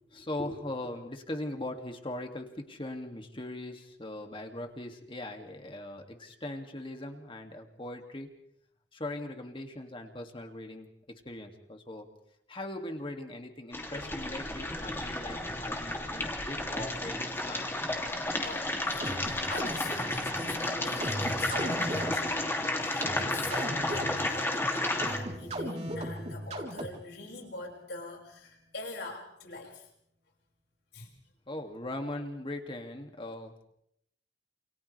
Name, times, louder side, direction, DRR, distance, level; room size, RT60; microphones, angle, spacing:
voice 1, 0.1-8.3 8.9-10.9 11.2-12.1 12.5-17.7 31.5-33.6, left 1 dB, 30° left, 4 dB, 2.4 m, -40 dB
sound 1, 13.7-25.2, left 1 dB, 15° left, 2.8 m, -32 dB
voice 2, 18.4-29.8 30.9-31.1, left 3 dB, 75° left, 0 dB, 6.3 m, -44 dB
sound 2, 19.0-27.2, equal, 40° right, 3.7 m, -38 dB
29.0 x 28.5 x 3.4 m, 0.72 s
head